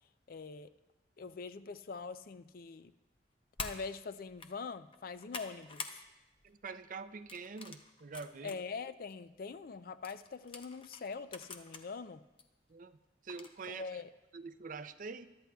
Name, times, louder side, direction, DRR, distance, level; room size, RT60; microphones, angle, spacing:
voice 1, 0.3-0.7 1.2-2.9 3.6-6.0 8.4-12.2 13.7-14.1, left 4 dB, 55° left, 12 dB, 0.4 m, -43 dB
sound 1, 3.6-3.8 4.3-4.5 4.9-6.0 6.4-6.6 7.3-8.6 9.1-9.2 10.0-11.8 12.4-12.5 13.3-13.7, left 4 dB, 30° left, 0.7 m, -46 dB
voice 2, 6.4-8.6 12.7-13.0 13.2-13.8 14.3-15.3, right 4 dB, 50° right, 11 dB, 0.5 m, -45 dB
22.0 x 11.0 x 2.3 m, 1.0 s
head